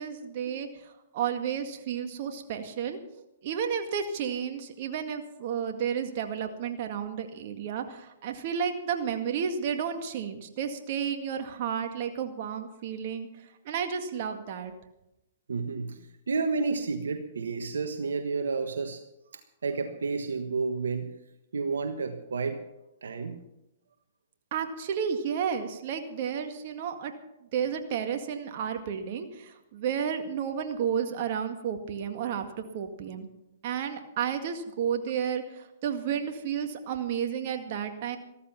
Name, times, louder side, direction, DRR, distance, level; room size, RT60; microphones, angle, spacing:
voice 1, 0.0-13.3 13.6-14.7 24.5-27.1 27.5-33.3 33.6-38.2, right 7 dB, 50° right, 6 dB, 2.0 m, -32 dB
voice 2, 15.5-16.0 16.3-19.0 19.6-21.1 21.5-22.6 23.0-23.4, right 4 dB, 80° right, 7 dB, 1.3 m, -30 dB
14.5 x 14.0 x 5.8 m, 0.89 s
hypercardioid pair, 125°, 0 cm